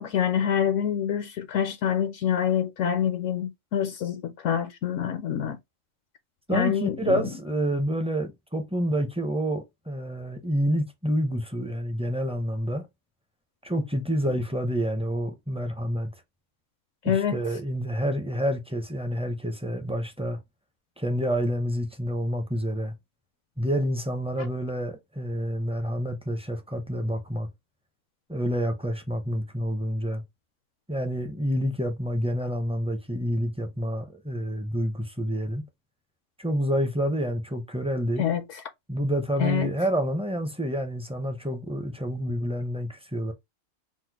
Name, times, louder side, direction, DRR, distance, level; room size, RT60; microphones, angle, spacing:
voice 1, 0.0-5.6 6.5-7.3 17.0-17.4 24.4-24.5 38.2-38.6 39.4-39.7, left 9 dB, 75° left, 0.9 m, -26 dB
voice 2, 6.5-12.8 13.6-16.1 17.0-20.4 21.0-22.9 23.6-27.5 28.3-30.2 30.9-35.6 36.4-38.2 38.9-43.3, equal, 10° right, 0.4 m, -28 dB
4.2 x 2.1 x 4.6 m
omnidirectional pair, 1.4 m